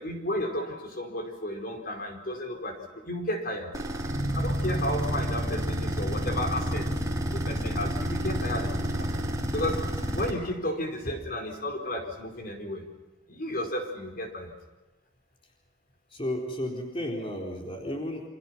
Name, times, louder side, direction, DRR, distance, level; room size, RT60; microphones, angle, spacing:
voice 1, 0.0-3.7 4.3-6.9 7.3-9.1 9.5-12.8 13.3-14.5, left 1 dB, 50° left, 4 dB, 4.6 m, -33 dB
sound 1, 3.7-10.3, equal, 20° right, 4.2 m, -29 dB
voice 2, 16.1-18.3, left 1 dB, 30° left, 0 dB, 4.0 m, -33 dB
29.0 x 27.0 x 6.0 m, 1.1 s
head